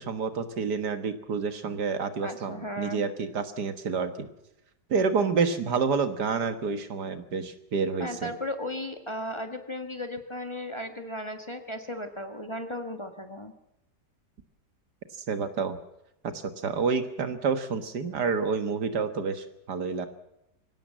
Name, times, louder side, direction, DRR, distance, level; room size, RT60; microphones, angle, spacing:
voice 1, 0.0-4.3 4.9-8.3 15.3-15.8 16.2-20.1, right 5 dB, 70° right, 10 dB, 2.0 m, -29 dB
voice 2, 2.2-3.0 8.0-13.5, left 1 dB, 15° left, 6 dB, 1.7 m, -35 dB
24.5 x 17.0 x 7.5 m, 0.86 s
omnidirectional pair, 1.8 m